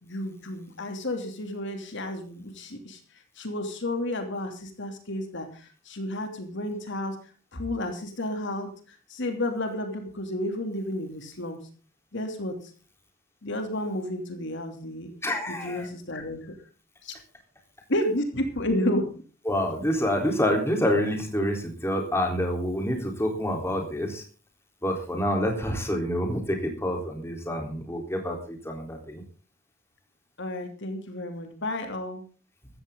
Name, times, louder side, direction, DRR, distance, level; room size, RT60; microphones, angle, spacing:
voice 1, 0.0-3.0 3.4-7.2 7.5-11.6 12.1-12.6 13.4-15.1 15.5-16.5 17.0-17.1 17.9-19.1 30.4-32.2, left 1 dB, 60° left, 5 dB, 3.0 m, -31 dB
voice 2, 15.2-15.9 19.5-24.2 24.8-29.2, equal, 10° left, 2 dB, 3.9 m, -27 dB
16.0 x 14.0 x 3.9 m, 0.38 s
head